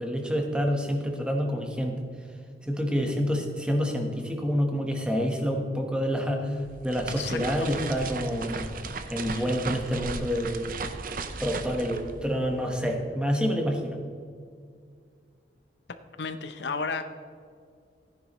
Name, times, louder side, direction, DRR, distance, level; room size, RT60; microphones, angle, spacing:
voice 1, 0.0-2.0 2.7-8.7 9.1-10.6 11.4-14.0, equal, 5° right, 2 dB, 1.3 m, -28 dB
sound 1, 6.6-12.9, right 4 dB, 55° right, 0.7 m, -36 dB
voice 2, 7.2-7.9 9.3-9.5 16.2-17.0, left 4 dB, 70° left, 9 dB, 0.7 m, -33 dB
15.0 x 10.5 x 3.2 m, 2.2 s
head